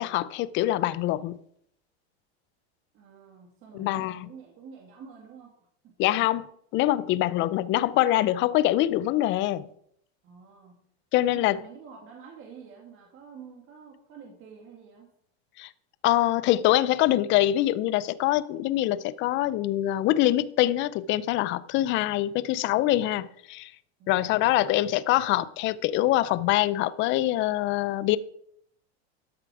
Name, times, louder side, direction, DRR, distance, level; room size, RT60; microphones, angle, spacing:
voice 1, 0.0-1.4 3.7-4.3 6.0-6.5 6.7-9.7 11.1-11.6 15.6-15.7 16.0-23.7 24.1-28.2, left 15 dB, 35° left, 0.5 m, -24 dB
voice 2, 2.9-5.5 5.8-5.9 10.2-10.7 11.3-15.1 24.0-24.3, right 6 dB, 40° right, 2.1 m, -48 dB
12.5 x 6.7 x 4.8 m
supercardioid pair, 130°, 34 cm